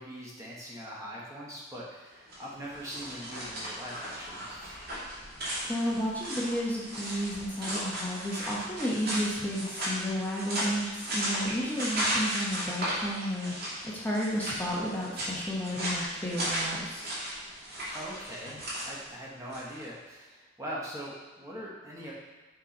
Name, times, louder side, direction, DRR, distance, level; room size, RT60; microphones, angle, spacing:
voice 1, 0.0-4.7 17.9-22.1, equal, 15° right, -5 dB, 1.2 m, -42 dB
sound 1, 2.2-19.8, equal, 55° right, 2.2 m, -35 dB
voice 2, 5.7-17.1, equal, 10° left, -6 dB, 1.1 m, -32 dB
7.2 x 4.1 x 4.2 m, 1.2 s
head